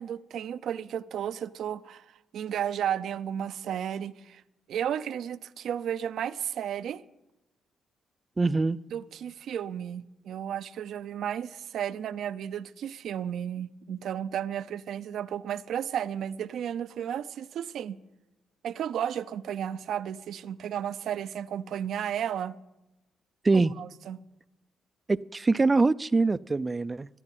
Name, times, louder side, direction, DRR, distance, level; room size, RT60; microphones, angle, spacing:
voice 1, 0.0-2.1 2.3-4.4 4.7-7.0 8.9-18.0 18.6-22.5 23.5-24.2, right 9 dB, 70° right, 0.6 m, -33 dB
voice 2, 8.4-8.8 23.4-23.7 25.1-27.1, right 3 dB, 25° right, 0.4 m, -24 dB
13.5 x 10.5 x 9.3 m
cardioid pair, 75°, 0 cm